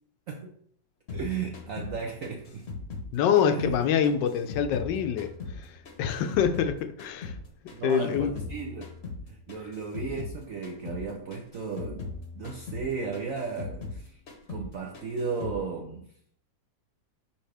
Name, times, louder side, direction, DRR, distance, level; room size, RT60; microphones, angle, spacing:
sound 1, 1.1-6.7 7.0-10.4 10.6-11.0 11.3-14.0 14.3-14.7 14.9-15.6, left 4 dB, 45° left, 1.0 m, -39 dB
voice 1, 1.1-2.7 3.4-3.8 7.7-9.0 9.3-14.2 14.5-16.1, right 5 dB, 75° right, 0.7 m, -35 dB
voice 2, 3.1-7.4 7.8-8.3, left 8 dB, 75° left, 1.2 m, -26 dB
5.5 x 5.3 x 3.4 m
omnidirectional pair, 2.1 m